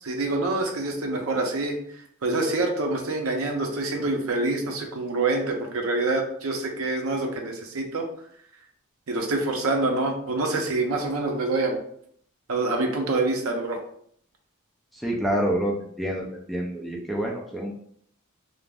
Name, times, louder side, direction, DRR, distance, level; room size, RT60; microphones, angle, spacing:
voice 1, 0.0-1.8 2.2-8.1 9.1-11.8 12.5-13.8, right 2 dB, 65° right, 2 dB, 0.6 m, -26 dB
voice 2, 14.9-17.7, equal, ahead, -2 dB, 0.4 m, -27 dB
2.4 x 2.0 x 3.4 m, 0.64 s
head